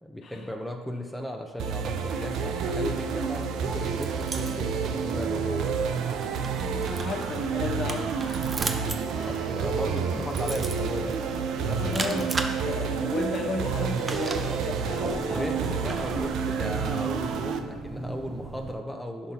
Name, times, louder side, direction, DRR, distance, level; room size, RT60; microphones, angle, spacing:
voice 1, 0.0-5.9 9.2-11.2 11.6-11.8 15.1-19.3, left 1 dB, ahead, 2 dB, 0.7 m, -35 dB
sound 1, 1.6-17.6, right 6 dB, 65° right, 0.6 m, -29 dB
sound 2, 3.4-18.7, right 3 dB, 35° right, 0.7 m, -38 dB
voice 2, 6.6-8.4 9.2-9.5 11.8-15.7, left 3 dB, 50° left, 2 dB, 1.1 m, -34 dB
10.5 x 5.4 x 2.9 m, 1.4 s
hypercardioid pair, 65°, 0 cm